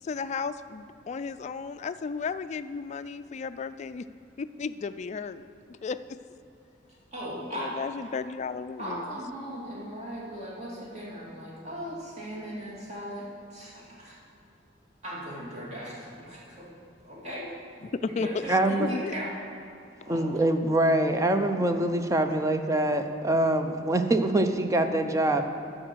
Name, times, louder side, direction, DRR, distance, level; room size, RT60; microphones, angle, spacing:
voice 1, 0.0-4.1 4.4-5.5 5.8-6.2 7.5-9.2 17.8-18.3 18.7-19.2, left 5 dB, 40° left, 12 dB, 0.3 m, -34 dB
voice 2, 7.1-7.7 8.8-14.2 15.0-16.7 17.0-17.5 18.1-19.3 20.0-20.3 22.4-22.5, equal, 40° right, -6 dB, 2.7 m, -38 dB
voice 3, 18.5-18.9 20.1-25.4, right 1 dB, 15° right, 6 dB, 0.6 m, -24 dB
12.5 x 5.0 x 6.3 m, 2.7 s
head